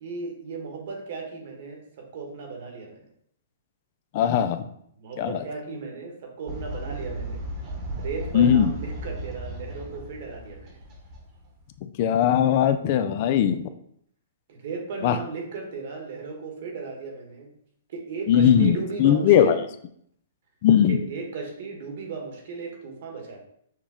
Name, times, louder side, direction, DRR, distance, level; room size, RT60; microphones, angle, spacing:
voice 1, 0.0-3.0 5.0-7.5 8.0-10.8 14.5-17.5 17.9-19.6 20.9-23.4, right 4 dB, 55° right, 2 dB, 1.3 m, -36 dB
voice 2, 4.1-4.7 5.2-5.4 8.3-8.7 11.8-13.7 15.0-15.2 18.3-19.6 20.6-21.0, left 9 dB, 45° left, 10 dB, 0.3 m, -19 dB
Fowl, 6.5-11.7, right 1 dB, 30° right, 1.1 m, -35 dB
6.3 x 2.2 x 3.6 m, 0.68 s
hypercardioid pair, 145°, 0 cm